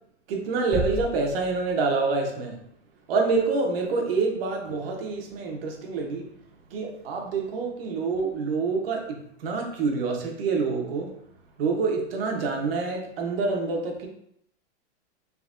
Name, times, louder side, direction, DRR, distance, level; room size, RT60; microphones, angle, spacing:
voice 1, 0.3-2.6 3.1-6.3 6.7-11.1 11.6-14.1, right 4 dB, 55° right, 1 dB, 0.9 m, -27 dB
sound 1, 0.7-2.1, right 1 dB, 20° left, 1.1 m, -33 dB
3.6 x 3.3 x 2.4 m, 0.72 s
hypercardioid pair, 150°, 35 cm